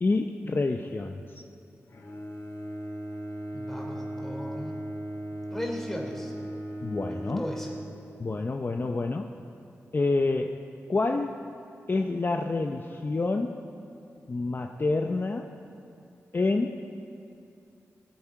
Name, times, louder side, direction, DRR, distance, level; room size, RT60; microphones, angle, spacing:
voice 1, 0.0-1.4 6.8-7.5 8.2-9.3 9.9-10.5 10.9-11.4 11.9-13.6 14.3-15.5 16.3-16.8, left 3 dB, 40° left, 4 dB, 0.6 m, -28 dB
Bowed string instrument, 1.9-8.6, right 1 dB, 60° left, 1.8 m, -37 dB
voice 2, 3.5-4.7 5.5-6.3 7.1-7.7, left 1 dB, 5° left, -1 dB, 3.0 m, -36 dB
19.5 x 8.7 x 4.7 m, 2.7 s
cardioid pair, 55°, 6 cm